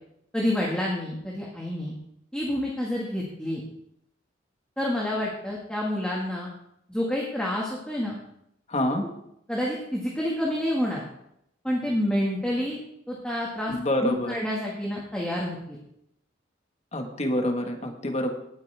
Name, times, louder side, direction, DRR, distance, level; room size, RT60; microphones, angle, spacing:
voice 1, 0.3-1.9 2.3-3.6 4.8-6.5 6.9-8.2 9.5-11.0 11.6-12.8 13.1-13.7 14.0-15.8, left 1 dB, 5° left, -4 dB, 1.8 m, -28 dB
voice 2, 8.7-9.0 13.7-14.3 16.9-18.3, left 1 dB, 35° left, 3 dB, 1.6 m, -27 dB
18.0 x 8.3 x 3.5 m, 0.77 s
head